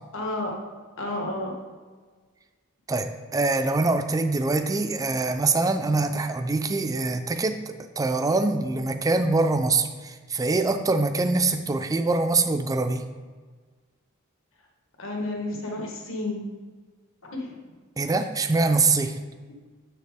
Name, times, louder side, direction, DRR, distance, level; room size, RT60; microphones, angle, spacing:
voice 1, 0.1-0.5 1.0-1.5 15.0-16.4 17.2-17.6, left 2 dB, 65° left, 0 dB, 1.3 m, -31 dB
voice 2, 2.9-13.1 18.0-19.2, right 3 dB, 15° right, 7 dB, 0.4 m, -24 dB
7.2 x 6.6 x 3.6 m, 1.5 s
head